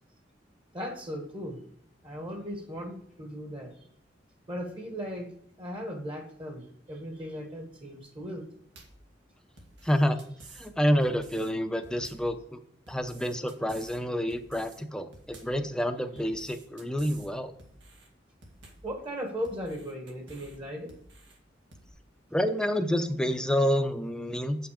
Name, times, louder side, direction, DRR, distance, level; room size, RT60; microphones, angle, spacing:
voice 1, 0.7-1.6 2.0-3.8 4.5-5.3 5.6-8.5 18.8-20.9, equal, 30° right, 4 dB, 1.3 m, -37 dB
sound 1, 8.8-9.1 9.6-10.7 11.0-11.5 11.8-12.3 12.9-14.0 14.3-14.8 15.1-15.6 16.2-17.3 17.6-18.1 18.4-18.9 19.4-20.6 20.9-21.4 21.7-21.9, right 2 dB, 90° right, 1.9 m, -52 dB
voice 2, 9.8-10.2 10.6-12.6 12.9-17.5 22.3-24.6, equal, 5° left, 7 dB, 0.6 m, -28 dB
7.8 x 5.9 x 5.0 m, 0.65 s
head